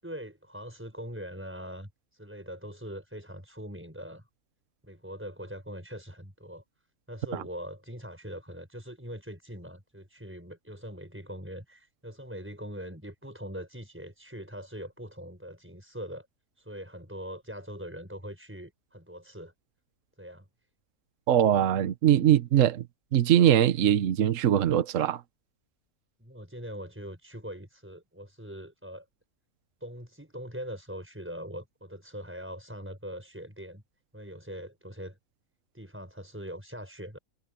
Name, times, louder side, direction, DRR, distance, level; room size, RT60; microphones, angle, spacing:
voice 1, 0.0-4.2 4.8-6.6 7.1-16.3 16.6-19.5 20.2-20.5 26.2-29.1 29.8-33.8 34.1-35.2 35.7-37.2, equal, 10° right, 5.9 m, -42 dB
voice 2, 21.3-22.8 23.1-25.2, right 11 dB, 65° right, 1.2 m, -22 dB
omnidirectional pair, 1.5 m